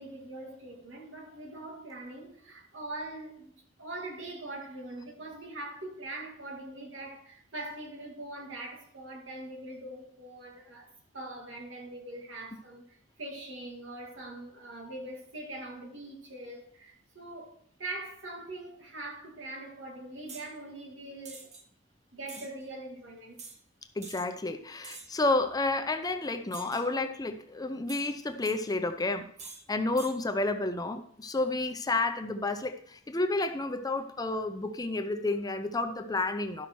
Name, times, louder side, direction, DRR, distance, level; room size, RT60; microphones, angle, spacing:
voice 1, 0.0-21.5 22.1-23.4, right 2 dB, 90° right, 2.1 m, -42 dB
sound 1, 20.3-20.5 21.2-21.6 22.3-22.5 23.4-23.6 24.0-24.3 24.8-25.2 26.5-26.9 27.9-28.6 29.4-29.6 30.0-30.2, right 4 dB, 35° right, 1.1 m, -46 dB
voice 2, 24.0-29.3 29.7-36.7, left 2 dB, 20° left, 0.6 m, -30 dB
12.0 x 5.7 x 4.6 m
head